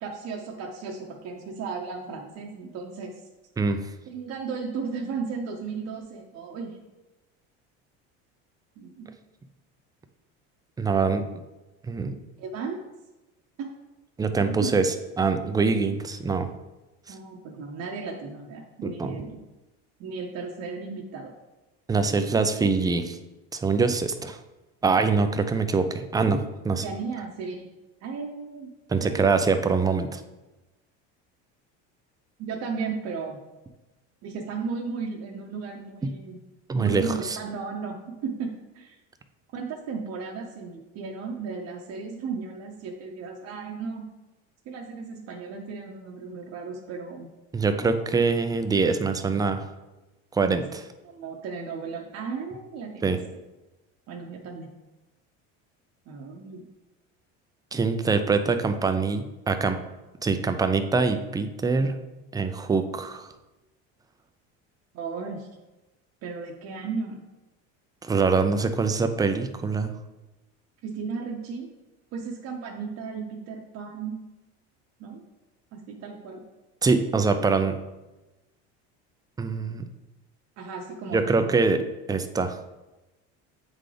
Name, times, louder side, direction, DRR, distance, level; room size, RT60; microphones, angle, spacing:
voice 1, 0.0-3.2 4.1-6.7 8.8-9.1 12.4-12.8 13.6-13.7 14.6-14.7 17.1-19.4 20.0-21.3 26.8-27.6 28.0-28.7 29.0-29.3 32.4-33.4 34.2-36.4 36.7-39.0 39.5-44.0 44.7-47.3 51.0-53.2 54.1-54.7 56.1-56.6 64.9-65.5 66.2-67.2 70.8-71.7 72.1-74.2 75.0-75.2 75.7-76.4 80.6-81.6, right 5 dB, 50° right, 0 dB, 0.8 m, -35 dB
voice 2, 3.6-3.9 10.8-11.3 11.9-12.2 14.2-16.5 18.8-19.2 21.9-23.2 23.5-24.4 24.8-26.8 28.9-30.2 36.7-37.0 47.5-49.6 50.3-50.9 53.0-53.2 57.7-59.8 60.2-61.9 62.3-63.3 68.0-69.9 76.8-77.8 79.4-79.9 81.1-81.8 82.1-82.6, right 4 dB, 10° right, 8 dB, 0.4 m, -24 dB
8.1 x 3.8 x 3.3 m, 1.1 s
supercardioid pair, 110°, 33 cm